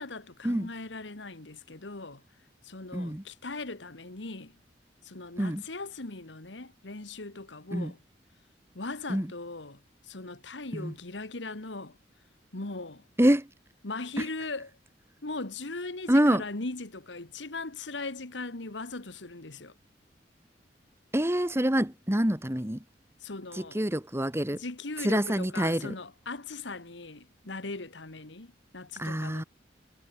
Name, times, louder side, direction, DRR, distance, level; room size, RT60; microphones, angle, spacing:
voice 1, 0.0-2.2 2.6-4.5 5.0-8.0 8.7-12.0 12.5-13.0 13.8-14.7 15.2-19.7 23.2-23.8 24.5-29.4, left 3 dB, 85° left, 1.9 m, -39 dB
voice 2, 2.9-3.2 5.4-5.6 7.7-7.9 9.1-9.3 10.7-10.9 13.2-13.5 16.1-16.4 21.1-22.8 23.7-24.6 25.0-25.9 29.0-29.4, right 1 dB, 15° right, 1.7 m, -26 dB
head